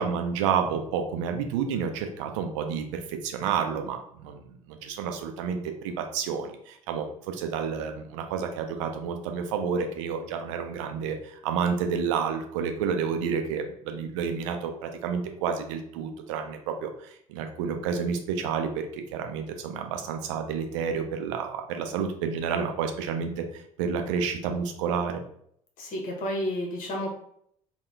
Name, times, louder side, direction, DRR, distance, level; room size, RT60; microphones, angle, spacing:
voice 1, 0.0-4.4 4.7-25.2, right 6 dB, 65° right, 5 dB, 0.5 m, -30 dB
voice 2, 25.8-27.1, equal, 50° left, 1 dB, 1.1 m, -31 dB
3.5 x 2.3 x 3.3 m, 0.67 s
figure-of-eight pair, 60°, 17 cm